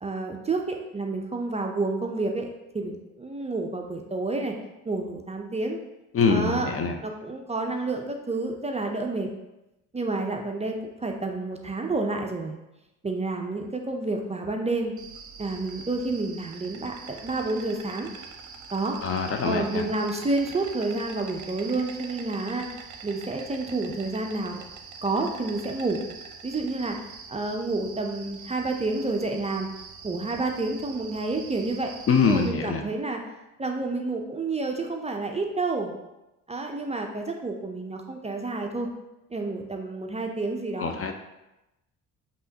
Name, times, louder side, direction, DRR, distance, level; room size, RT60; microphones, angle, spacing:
voice 1, 0.0-2.5 2.7-4.6 4.9-5.8 6.3-6.7 7.0-9.3 9.9-12.6 13.0-14.9 15.4-18.1 18.7-19.0 19.4-22.7 23.0-24.6 25.0-26.0 26.4-27.0 27.3-29.7 30.0-31.9 32.3-33.2 33.6-35.9 36.5-38.9 39.3-40.9, right 3 dB, 20° right, 2 dB, 0.5 m, -29 dB
voice 2, 6.1-7.0 19.0-19.8 32.1-32.8 40.8-41.1, left 5 dB, 40° left, 5 dB, 0.5 m, -24 dB
Insect, 15.0-32.5, right 5 dB, 55° right, 0.7 m, -44 dB
5.4 x 3.0 x 2.7 m, 0.96 s
supercardioid pair, 70°, 37 cm